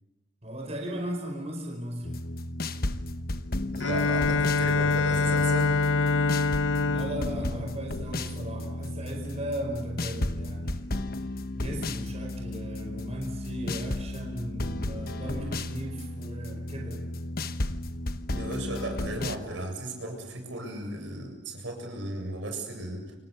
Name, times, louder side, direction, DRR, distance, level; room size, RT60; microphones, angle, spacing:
voice 1, 0.4-2.3 6.9-11.0 11.5-17.1, equal, 35° right, 2 dB, 5.0 m, -37 dB
sound 1, 2.0-19.4, left 2 dB, 55° left, 1.2 m, -34 dB
voice 2, 3.7-5.8 18.3-23.2, right 1 dB, 75° right, 4 dB, 7.6 m, -35 dB
Bowed string instrument, 3.8-8.6, left 4 dB, 90° left, 1.2 m, -26 dB
29.5 x 27.0 x 7.0 m, 1.0 s
head